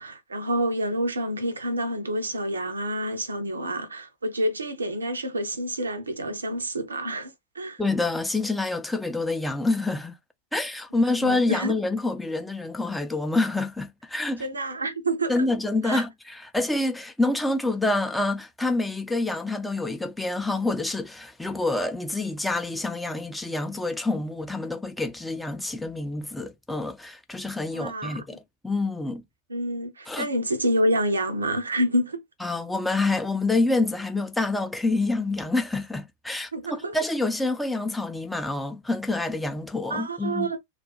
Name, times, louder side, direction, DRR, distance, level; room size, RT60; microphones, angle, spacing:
voice 1, 0.0-7.8 11.0-11.7 14.4-15.5 15.8-16.0 27.7-28.2 29.5-32.2 36.5-37.0 39.9-40.6, right 1 dB, 75° right, 0.6 m, -28 dB
voice 2, 7.8-10.1 10.5-14.4 15.3-29.2 30.1-30.3 32.4-40.5, left 2 dB, 5° left, 0.5 m, -27 dB
2.4 x 2.2 x 3.7 m
figure-of-eight pair, 90°, 0 cm